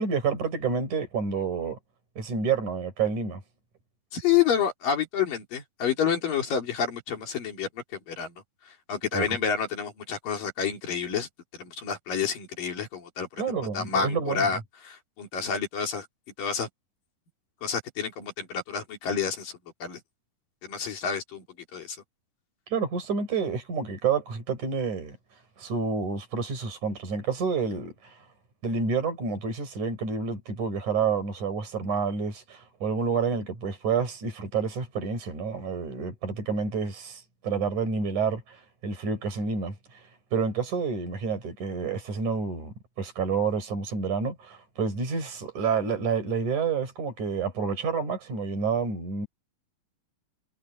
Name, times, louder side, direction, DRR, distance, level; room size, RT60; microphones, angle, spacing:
voice 1, 0.0-1.8 2.2-3.4 9.1-9.4 13.4-14.5 22.7-25.2 25.6-28.2 28.6-49.3, right 5 dB, 65° right, 7.3 m, -29 dB
voice 2, 4.1-8.3 8.9-13.4 13.7-16.1 16.4-16.7 17.6-19.5 19.8-20.0 20.6-21.5 21.7-22.0, left 7 dB, 85° left, 5.3 m, -29 dB
omnidirectional pair, 3.8 m